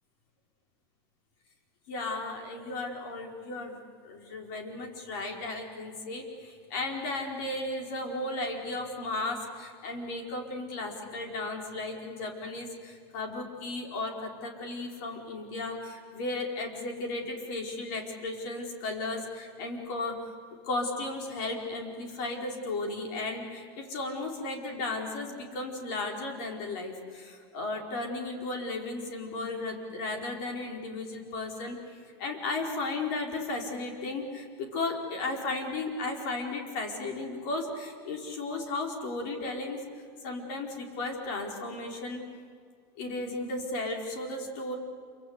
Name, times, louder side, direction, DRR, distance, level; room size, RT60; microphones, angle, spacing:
voice 1, 1.9-20.1 20.6-39.8 40.2-42.2 43.0-44.7, left 2 dB, 45° left, 2 dB, 4.8 m, -35 dB
27.5 x 25.0 x 8.2 m, 2.2 s
supercardioid pair, 175°, 14 cm